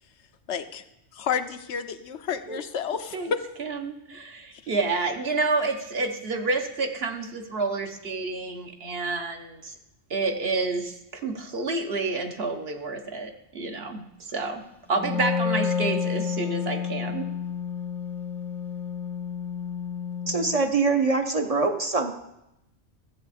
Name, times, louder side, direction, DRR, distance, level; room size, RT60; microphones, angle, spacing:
voice 1, 0.5-0.8 1.1-3.4, left 7 dB, 75° left, 9 dB, 1.0 m, -30 dB
voice 2, 3.6-9.7 10.1-14.6 14.9-17.3, right 3 dB, 60° right, 4 dB, 1.3 m, -29 dB
Wind instrument woodwind instrument, 14.9-20.6, left 6 dB, ahead, 0.5 m, -30 dB
voice 3, 20.3-22.1, right 3 dB, 35° right, 5 dB, 0.8 m, -23 dB
13.5 x 8.0 x 4.2 m, 0.86 s
omnidirectional pair, 1.2 m